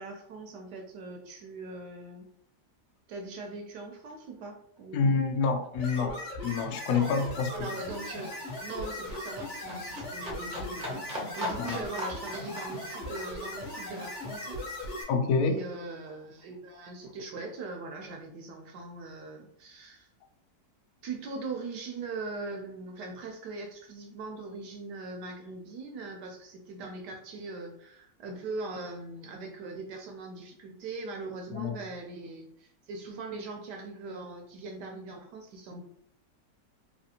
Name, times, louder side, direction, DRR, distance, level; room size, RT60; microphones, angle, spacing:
voice 1, 0.0-2.3 3.1-5.2 6.9-7.1 7.5-15.1 15.4-20.1 21.0-35.8, right 3 dB, 75° right, 2 dB, 1.1 m, -41 dB
Livestock farm animals working animals, 4.4-4.5 4.8-15.7 16.1-17.1 17.4-17.5, left 1 dB, 45° right, 0.6 m, -42 dB
voice 2, 4.9-7.5 11.6-11.8 15.1-15.6 31.5-31.7, left 5 dB, 75° left, 4 dB, 0.8 m, -27 dB
sound 1, 5.8-15.0, left 1 dB, 45° left, 1.2 m, -39 dB
3.2 x 2.8 x 2.8 m, 0.69 s
omnidirectional pair, 2.0 m